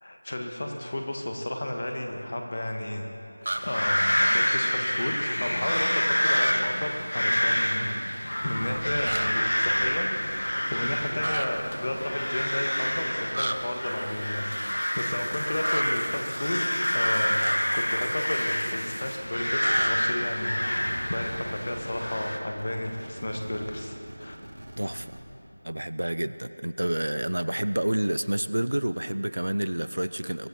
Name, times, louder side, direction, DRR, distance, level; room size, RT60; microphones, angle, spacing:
voice 1, 0.0-3.0 3.4-8.1 8.4-10.1 10.6-24.4, left 1 dB, 30° left, 2 dB, 1.4 m, -33 dB
sound 1, 3.4-3.6 6.2-6.5 9.0-9.3 11.2-11.5 13.3-13.6 15.6-15.8 17.4-17.6 19.6-19.9, right 2 dB, 35° right, 0.7 m, -30 dB
sound 2, 3.5-22.4, equal, 90° left, 1.8 m, -28 dB
sound 3, 8.4-20.3 20.6-25.2, right 1 dB, 55° right, 2.5 m, -43 dB
voice 2, 24.8-25.1 25.6-30.5, right 1 dB, 75° right, 13 dB, 0.6 m, -29 dB
23.0 x 13.5 x 4.3 m, 2.8 s
figure-of-eight pair, 180°, 0 cm